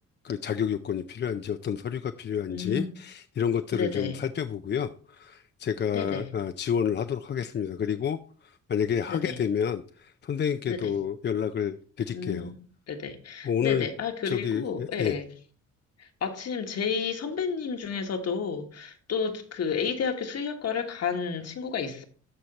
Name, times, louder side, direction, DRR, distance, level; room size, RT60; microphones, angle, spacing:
voice 1, 0.2-8.2 8.4-12.5 13.4-13.9 14.2-15.2, left 8 dB, 35° left, 0.5 m, -29 dB
voice 2, 2.5-2.9 3.7-4.2 5.9-6.3 9.1-9.4 10.7-10.9 12.1-12.6 12.9-15.3 16.0-22.0, left 6 dB, 55° left, 1.6 m, -31 dB
13.0 x 4.4 x 4.1 m
cardioid pair, 90°, 30 cm